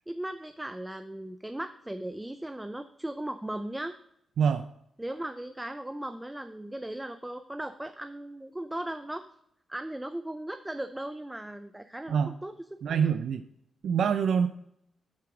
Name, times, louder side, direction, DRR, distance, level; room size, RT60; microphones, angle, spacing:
voice 1, 0.1-4.0 5.0-9.2 9.7-12.5 12.8-13.1, right 1 dB, 10° right, 9 dB, 0.5 m, -37 dB
voice 2, 12.8-13.4 13.8-14.5, right 7 dB, 75° right, 10 dB, 0.4 m, -25 dB
8.5 x 4.6 x 6.0 m, 0.75 s
cardioid pair, 65°, 0 cm